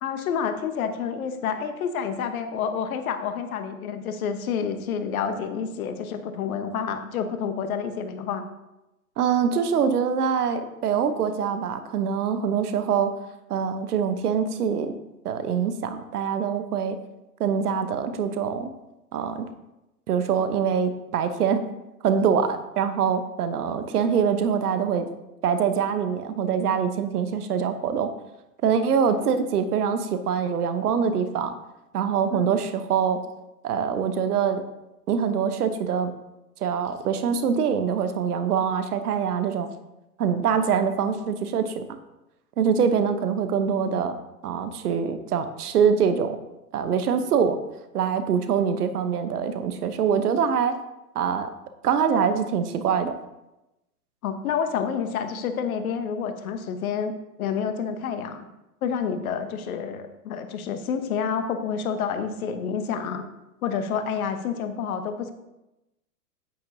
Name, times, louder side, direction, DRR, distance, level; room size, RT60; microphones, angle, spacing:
voice 1, 0.0-8.5 32.3-32.5 54.2-57.1 57.4-58.4 58.8-63.2 63.6-65.3, left 7 dB, 60° left, 8 dB, 1.2 m, -29 dB
voice 2, 9.2-13.1 13.5-14.9 15.2-17.0 17.4-18.7 19.1-19.5 20.1-21.6 22.0-25.1 25.4-28.1 28.6-31.5 31.9-33.2 33.6-34.6 35.1-36.1 36.6-39.7 40.2-41.8 42.6-44.2 44.4-46.4 46.7-47.6 47.9-50.7 51.1-51.5 51.8-53.1, right 7 dB, 70° right, 9 dB, 1.0 m, -24 dB
9.0 x 8.6 x 2.8 m, 0.95 s
hypercardioid pair, 110°, 47 cm